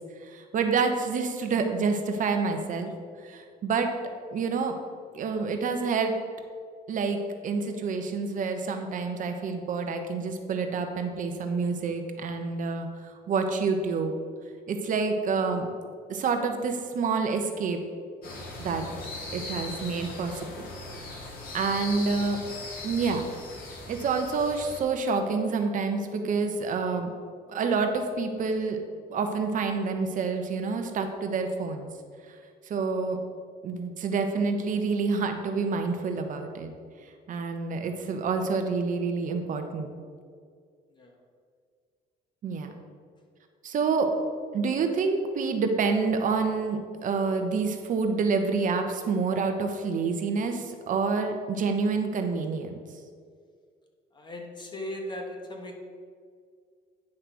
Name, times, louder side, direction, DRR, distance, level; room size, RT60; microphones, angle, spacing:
voice 1, 0.2-2.9 3.2-3.9 4.3-4.8 5.1-6.1 6.9-12.9 13.3-14.1 14.7-15.7 16.1-17.8 18.6-18.8 19.3-20.3 21.5-22.4 22.8-23.3 23.9-27.1 27.5-28.8 29.1-31.9 32.7-33.2 33.6-36.7 37.3-39.9 42.4-42.7 43.6-44.1 44.5-52.7, right 4 dB, 50° right, 5 dB, 0.9 m, -28 dB
sound 1, 18.2-24.8, left 2 dB, 60° left, 1.9 m, -39 dB
voice 2, 54.1-55.7, left 1 dB, 25° left, 2 dB, 1.3 m, -38 dB
9.6 x 3.3 x 6.0 m, 2.1 s
cardioid pair, 110°, 17 cm